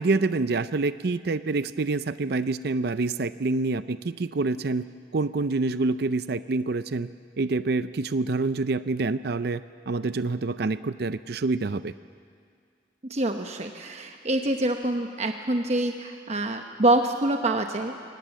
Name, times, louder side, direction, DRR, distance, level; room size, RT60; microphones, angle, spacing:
voice 1, 0.0-4.9 5.1-7.1 7.4-11.9, right 3 dB, 60° right, 13 dB, 0.5 m, -27 dB
voice 2, 13.1-17.9, right 1 dB, 40° right, 4 dB, 1.0 m, -26 dB
22.5 x 18.5 x 9.0 m, 2.2 s
head